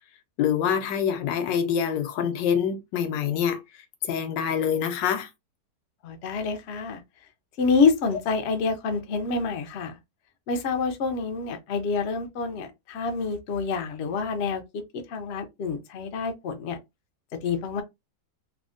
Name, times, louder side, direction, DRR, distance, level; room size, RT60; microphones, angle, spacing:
voice 1, 0.4-3.6 4.0-5.3, left 8 dB, 90° left, 1.3 m, -25 dB
voice 2, 6.0-7.0 7.6-10.0 10.5-16.8 17.4-17.8, left 4 dB, 70° left, 0.6 m, -27 dB
3.6 x 2.1 x 2.5 m
omnidirectional pair, 1.9 m